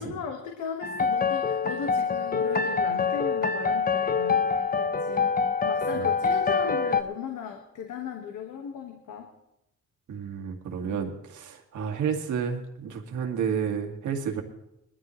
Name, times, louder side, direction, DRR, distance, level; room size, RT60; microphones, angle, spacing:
voice 1, 0.0-5.3 5.6-9.3 10.8-11.0, left 6 dB, 75° left, 2 dB, 1.7 m, -37 dB
sound 1, 0.8-7.0, left 5 dB, 30° left, 0.9 m, -25 dB
voice 2, 10.1-14.4, right 7 dB, 75° right, 3 dB, 2.1 m, -31 dB
20.5 x 13.0 x 3.2 m, 0.86 s
cardioid pair, 90°, 30 cm